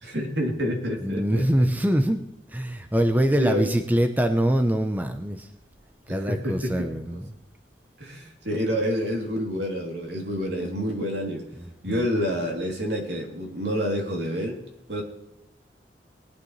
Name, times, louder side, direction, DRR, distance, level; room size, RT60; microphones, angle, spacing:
voice 1, 0.0-1.6 3.4-3.8 6.1-7.2 8.0-11.4 11.8-14.6 14.9-15.0, equal, 75° right, 0 dB, 3.0 m, -28 dB
voice 2, 1.0-2.2 2.5-5.5 6.1-7.3 11.9-12.0, right 1 dB, 10° right, 6 dB, 0.7 m, -23 dB
21.0 x 9.7 x 3.2 m, 0.90 s
head